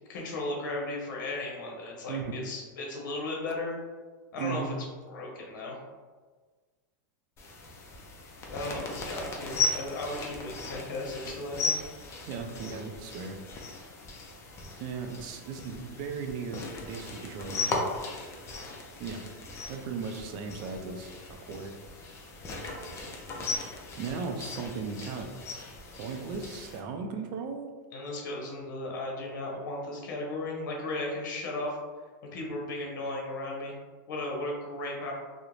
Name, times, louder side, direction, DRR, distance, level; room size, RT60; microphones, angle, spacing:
voice 1, 0.1-3.8 4.3-4.7 5.1-5.8 8.5-11.8 27.9-31.8 32.3-33.7 34.1-35.1, left 2 dB, 75° left, -1 dB, 0.7 m, -35 dB
voice 2, 2.1-2.4 4.4-4.7 12.3-13.4 14.8-17.8 19.0-19.2 19.7-21.7 24.0-25.3 25.9-27.7, right 5 dB, 45° right, 4 dB, 0.4 m, -37 dB
sound 1, 7.4-26.8, left 3 dB, 25° left, 0.4 m, -37 dB
2.4 x 2.0 x 3.0 m, 1.4 s
supercardioid pair, 135°, 10 cm